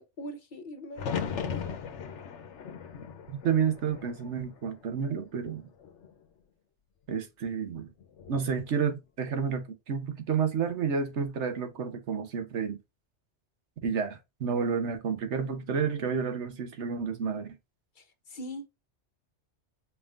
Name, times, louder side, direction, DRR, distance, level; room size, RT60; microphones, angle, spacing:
voice 1, 0.0-1.6 18.0-18.7, equal, 50° left, 0.9 m, -42 dB
sound 1, 0.9-5.0 5.4-6.1 8.0-8.5, left 7 dB, 90° left, 1.1 m, -38 dB
voice 2, 3.3-5.6 7.1-7.9 8.3-12.8 13.8-17.5, right 6 dB, 85° right, 1.2 m, -30 dB
4.8 x 3.6 x 2.4 m
omnidirectional pair, 1.2 m